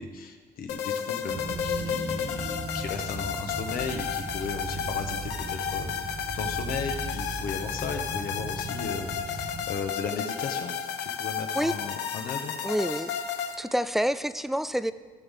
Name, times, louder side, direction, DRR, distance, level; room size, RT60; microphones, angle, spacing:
voice 1, 0.0-12.5, left 5 dB, 60° left, 5 dB, 1.3 m, -36 dB
sound 1, 0.7-13.6, left 8 dB, 90° left, 1.0 m, -33 dB
sound 2, 1.3-9.7, right 3 dB, 25° right, 0.9 m, -37 dB
voice 2, 12.6-13.1 13.6-14.9, equal, ahead, 14 dB, 0.3 m, -27 dB
17.0 x 6.4 x 3.7 m, 1.5 s
cardioid pair, 110°, 17 cm